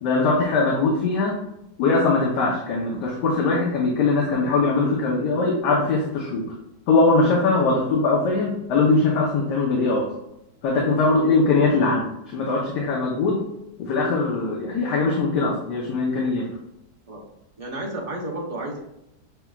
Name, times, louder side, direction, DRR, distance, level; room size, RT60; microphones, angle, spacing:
voice 1, 0.0-1.4 1.8-6.5 6.9-10.1 10.6-13.4 13.8-16.5, left 3 dB, 75° left, -2 dB, 1.4 m, -21 dB
voice 2, 17.6-18.8, right 1 dB, 50° right, -3 dB, 0.4 m, -32 dB
6.5 x 3.4 x 2.3 m, 0.85 s
omnidirectional pair, 1.9 m